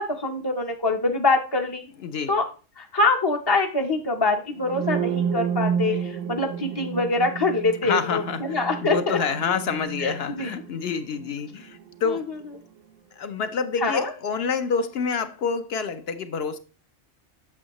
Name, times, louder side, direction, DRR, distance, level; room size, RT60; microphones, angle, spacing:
voice 1, 0.0-1.8 2.3-2.4 2.8-9.2 10.0-10.5 12.1-12.2 13.8-14.1, left 2 dB, 25° left, 0.5 m, -24 dB
voice 2, 2.0-2.3 7.8-12.3 13.2-16.6, left 6 dB, 60° left, 0.8 m, -28 dB
sound 1, 4.6-12.4, right 7 dB, 80° right, 1.0 m, -31 dB
8.4 x 6.3 x 3.0 m
omnidirectional pair, 1.3 m